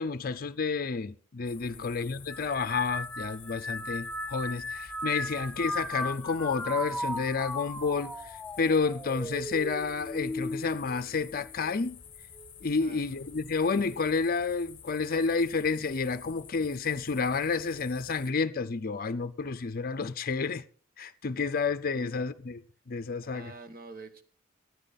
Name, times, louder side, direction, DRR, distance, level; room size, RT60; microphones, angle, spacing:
voice 1, 0.0-12.0 12.6-20.6 21.0-23.5, left 4 dB, 45° left, 0.6 m, -30 dB
sound 1, 1.4-18.3, left 7 dB, 25° left, 1.0 m, -50 dB
voice 2, 1.6-2.0 12.8-13.3 21.9-22.1 23.3-24.2, right 3 dB, 45° right, 1.2 m, -48 dB
sound 2, 2.3-11.9 12.3-12.9 13.9-14.2, left 1 dB, 5° left, 0.5 m, -37 dB
15.5 x 9.7 x 4.1 m
head